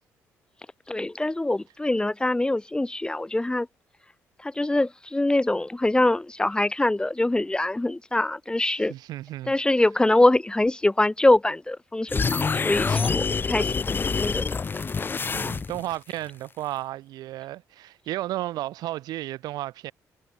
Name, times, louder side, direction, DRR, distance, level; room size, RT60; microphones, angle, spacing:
voice 1, 0.9-3.7 4.4-8.9 9.5-13.7 14.2-14.6, left 2 dB, 15° left, 3.7 m, -23 dB
voice 2, 8.7-9.5 15.3-19.9, right 15 dB, 80° right, 3.7 m, -33 dB
sound 1, 12.1-15.9, left 5 dB, 30° left, 0.8 m, -26 dB
cardioid pair, 80°, 7 cm